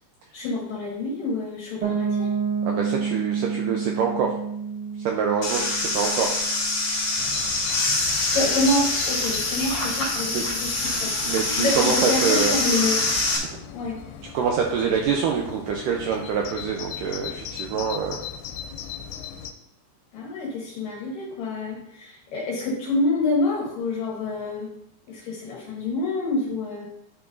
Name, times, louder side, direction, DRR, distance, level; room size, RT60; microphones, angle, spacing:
voice 1, 0.3-2.3 8.3-13.0 13.7-14.0 20.1-24.7 25.1-26.9, left 2 dB, 65° left, -2 dB, 2.6 m, -27 dB
Piano, 1.8-7.5, right 6 dB, 50° right, 2.7 m, -29 dB
voice 2, 2.6-4.4 5.1-6.3 9.6-9.7 10.3-10.4 10.9-12.6 13.4-13.6 14.3-18.2, right 6 dB, 80° right, 1 dB, 1.9 m, -25 dB
sound 1, 5.4-13.4, left 2 dB, 45° left, 3.0 m, -25 dB
Bird vocalization bird call bird song, 7.2-19.5, left 8 dB, 85° left, 2.5 m, -38 dB
10.5 x 5.9 x 2.6 m, 0.75 s
omnidirectional pair, 4.5 m